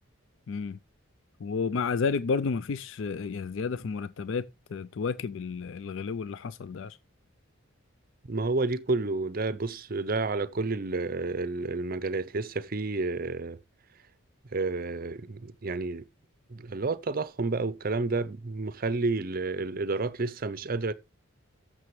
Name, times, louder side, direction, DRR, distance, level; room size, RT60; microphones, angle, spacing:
voice 1, 0.5-0.8 1.4-7.0, left 5 dB, 65° left, 0.4 m, -31 dB
voice 2, 8.3-13.6 14.5-16.0 16.5-20.9, right 3 dB, 45° right, 0.6 m, -30 dB
14.0 x 6.1 x 3.1 m
head